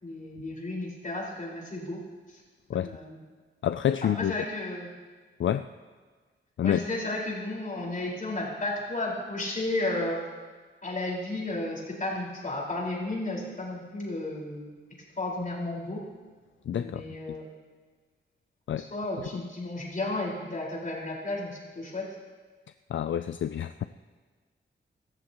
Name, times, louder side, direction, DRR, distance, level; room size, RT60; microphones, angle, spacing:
voice 1, 0.0-2.0 2.3-2.4 2.7-3.2 4.2-4.9 6.6-10.2 10.8-14.7 15.2-16.0 16.7-17.5 18.7-22.1, left 2 dB, 40° left, -3 dB, 4.8 m, -33 dB
voice 2, 3.6-4.3 5.4-5.7 6.6-6.8 16.7-17.4 18.7-18.8 19.2-19.3 22.9-23.8, left 10 dB, 75° left, 11 dB, 0.4 m, -28 dB
24.5 x 14.0 x 3.0 m, 1.4 s
wide cardioid pair, 100°, 20 cm